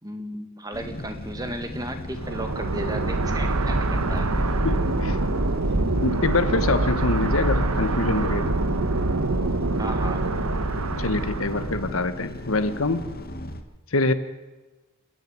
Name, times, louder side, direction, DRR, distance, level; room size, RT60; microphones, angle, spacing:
voice 1, 0.0-4.3 9.8-10.2, right 1 dB, 15° right, 6 dB, 1.8 m, -34 dB
sound 1, 0.7-13.6, equal, 45° left, 1.5 m, -36 dB
sound 2, 2.1-12.0, right 2 dB, 90° right, 1.3 m, -25 dB
voice 2, 4.6-5.2 6.0-8.6 11.0-13.0 13.9-14.1, left 2 dB, 70° left, 10 dB, 1.3 m, -25 dB
27.5 x 10.5 x 9.4 m, 1.2 s
head